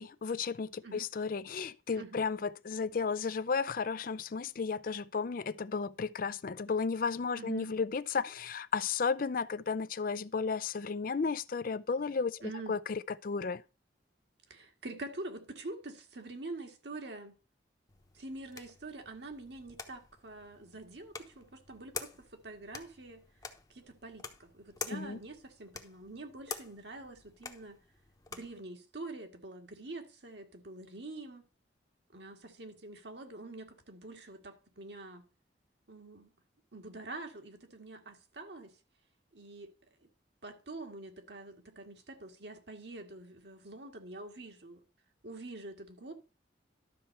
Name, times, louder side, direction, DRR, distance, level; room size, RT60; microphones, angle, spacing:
voice 1, 0.0-12.4 12.7-13.6 24.9-25.2, left 5 dB, 45° left, 0.4 m, -33 dB
voice 2, 7.3-7.7 12.4-12.7 14.5-17.3 18.1-23.2 23.7-27.8 28.3-31.5 32.1-35.3 35.9-36.3 36.7-38.8 39.3-39.7 40.4-44.8 45.2-46.1, right 2 dB, 60° right, 1.8 m, -46 dB
sound 1, 17.9-28.6, left 5 dB, 20° left, 0.9 m, -48 dB
12.0 x 4.3 x 6.6 m
head